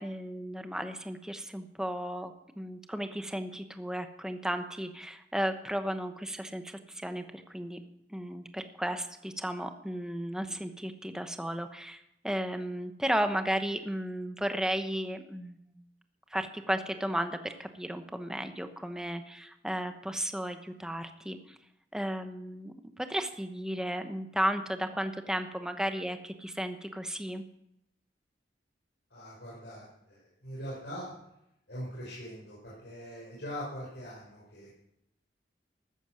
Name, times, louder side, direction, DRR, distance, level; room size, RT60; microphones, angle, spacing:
voice 1, 0.0-7.8 8.1-15.8 16.3-21.6 21.9-27.4, equal, 5° right, 7 dB, 0.9 m, -34 dB
voice 2, 29.1-31.1 31.7-34.7, equal, 70° left, -6 dB, 5.5 m, -42 dB
14.5 x 13.0 x 6.4 m, 0.82 s
head